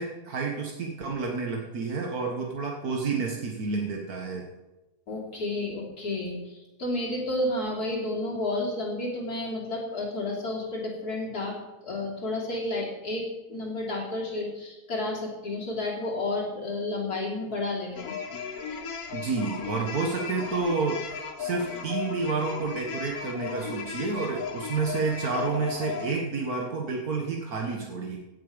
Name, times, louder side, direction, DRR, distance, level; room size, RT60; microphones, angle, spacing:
voice 1, 0.0-4.5 19.1-28.2, right 4 dB, 75° right, 0 dB, 1.9 m, -30 dB
voice 2, 5.1-11.6 11.8-18.2, left 2 dB, 90° left, -2 dB, 3.7 m, -31 dB
sound 1, 18.0-26.1, left 6 dB, 75° left, 1.7 m, -36 dB
17.5 x 8.0 x 5.1 m, 1.1 s
omnidirectional pair, 1.6 m